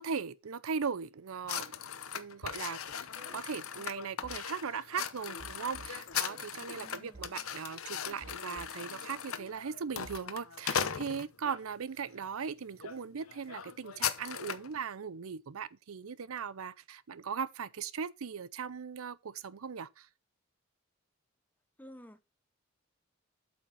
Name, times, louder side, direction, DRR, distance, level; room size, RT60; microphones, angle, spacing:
voice 1, 0.0-1.7 2.1-3.0 3.3-20.1, right 6 dB, 90° right, 0.6 m, -39 dB
sound 1, 1.5-11.6 12.2-12.4 12.8-13.0 13.2-14.7, left 8 dB, 85° left, 1.0 m, -38 dB
sound 2, 2.5-2.6 2.8-3.4 4.2-4.4 5.4-6.6 7.1-7.6 8.2-9.1 9.5-10.2, right 3 dB, 40° right, 0.7 m, -52 dB
voice 2, 6.7-7.4 21.8-22.2, equal, 10° left, 0.7 m, -53 dB
8.5 x 5.6 x 5.7 m
head